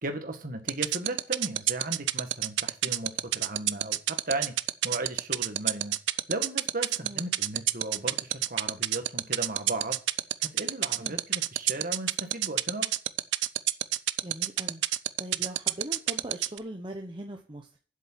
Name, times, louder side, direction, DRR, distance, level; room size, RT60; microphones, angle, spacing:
voice 1, 0.0-4.0 4.3-4.5 4.8-5.9 6.3-10.0 10.4-12.9, right 2 dB, 50° right, 6 dB, 1.8 m, -36 dB
sound 1, 0.7-16.6, right 15 dB, 85° right, 0.5 m, -26 dB
voice 2, 14.2-14.8 15.2-17.8, right 1 dB, 25° right, 2 dB, 0.9 m, -40 dB
7.7 x 7.5 x 7.5 m, 0.41 s
head